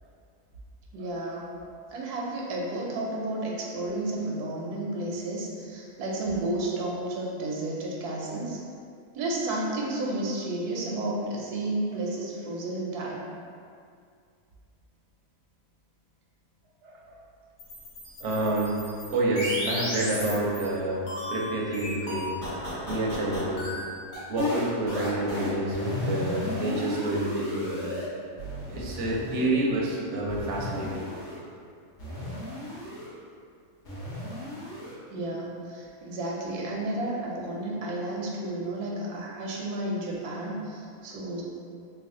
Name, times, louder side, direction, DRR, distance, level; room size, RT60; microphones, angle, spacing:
voice 1, 0.9-1.5 1.9-8.6 9.1-13.2 32.2-32.4 35.1-41.4, right 2 dB, 80° right, -3 dB, 1.1 m, -32 dB
voice 2, 16.8-17.2 18.2-18.8 19.1-21.0 21.3-22.3 22.9-23.7 24.3-27.9 28.7-31.2, right 1 dB, 60° right, -4 dB, 0.8 m, -28 dB
sound 1, 17.6-20.7 21.1-28.1 28.4-29.5 30.3-31.4 32.0-33.1 33.9-34.9, left 1 dB, 55° left, 1.2 m, -34 dB
3.2 x 2.3 x 3.6 m, 2.3 s
omnidirectional pair, 1.6 m